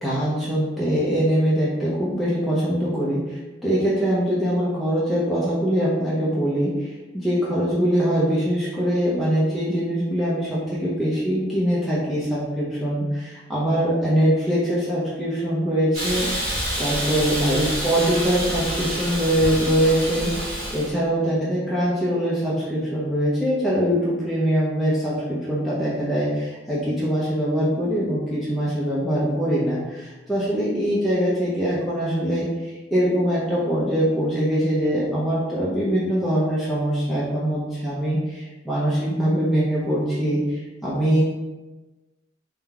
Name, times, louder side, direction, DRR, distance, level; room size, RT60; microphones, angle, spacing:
voice 1, 0.0-41.2, equal, ahead, -9 dB, 0.8 m, -23 dB
Hiss, 15.9-20.9, equal, 55° right, 1.4 m, -28 dB
3.8 x 3.4 x 3.4 m, 1.2 s
head